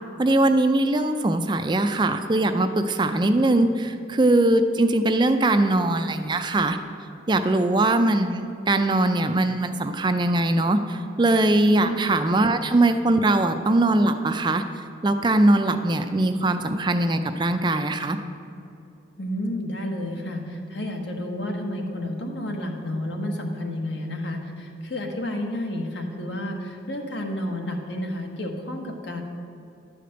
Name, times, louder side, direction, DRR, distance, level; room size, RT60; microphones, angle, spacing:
voice 1, 0.2-6.8 7.3-14.6 15.0-18.2, right 2 dB, 25° right, 8 dB, 0.4 m, -21 dB
voice 2, 19.2-29.2, left 1 dB, 65° left, 2 dB, 1.3 m, -31 dB
11.0 x 5.1 x 7.8 m, 2.7 s
head